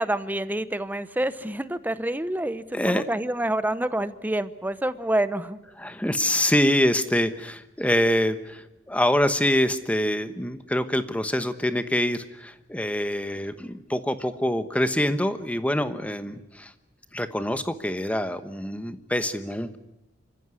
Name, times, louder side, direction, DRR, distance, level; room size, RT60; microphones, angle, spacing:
voice 1, 0.0-5.6, right 1 dB, 10° right, 13 dB, 0.8 m, -27 dB
voice 2, 2.7-3.0 5.8-16.7 17.1-19.8, left 1 dB, 5° left, 10 dB, 1.1 m, -25 dB
26.0 x 14.5 x 9.7 m, 0.96 s
head